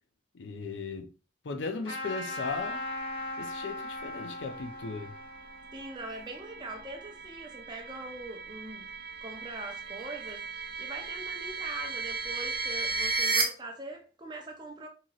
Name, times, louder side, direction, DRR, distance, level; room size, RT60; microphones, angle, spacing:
voice 1, 0.3-1.1 1.4-2.8 3.4-5.1, left 4 dB, 85° left, 0.5 m, -37 dB
Trumpet, 1.8-6.9, left 2 dB, 30° left, 1.2 m, -39 dB
sound 1, 2.5-13.4, right 4 dB, 70° right, 0.7 m, -36 dB
voice 2, 5.7-8.9 9.2-10.5 10.8-14.9, right 2 dB, 25° right, 0.5 m, -42 dB
2.9 x 2.7 x 2.3 m
head